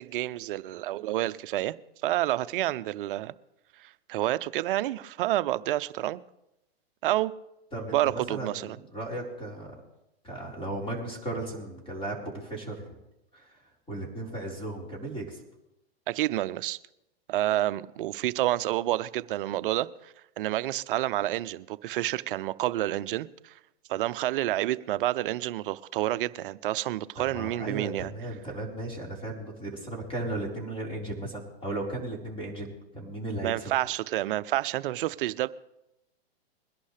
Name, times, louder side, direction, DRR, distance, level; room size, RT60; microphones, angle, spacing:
voice 1, 0.0-1.7 2.0-3.3 3.8-6.2 7.0-7.3 7.9-8.8 16.1-16.8 17.3-23.5 23.9-28.1 33.4-35.5, right 15 dB, 55° right, 0.6 m, -29 dB
voice 2, 7.7-9.7 10.2-13.0 13.3-13.5 13.9-15.4 27.2-33.7, right 2 dB, 15° left, 4.3 m, -36 dB
22.0 x 11.5 x 3.4 m
hypercardioid pair, 120°, 32 cm